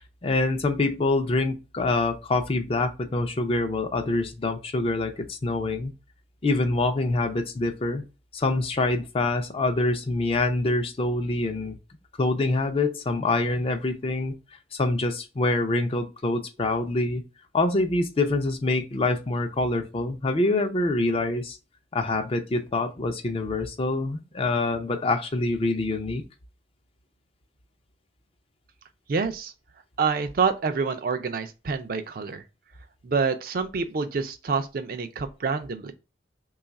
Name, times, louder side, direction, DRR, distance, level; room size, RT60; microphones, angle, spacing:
voice 1, 0.0-5.9 6.4-8.0 8.3-11.8 12.2-14.3 14.7-17.2 17.5-21.6 21.9-26.2, left 2 dB, 30° left, 0.4 m, -25 dB
voice 2, 29.1-29.5 30.0-32.4 33.0-35.9, right 5 dB, 50° right, 0.4 m, -27 dB
3.1 x 2.3 x 4.0 m
head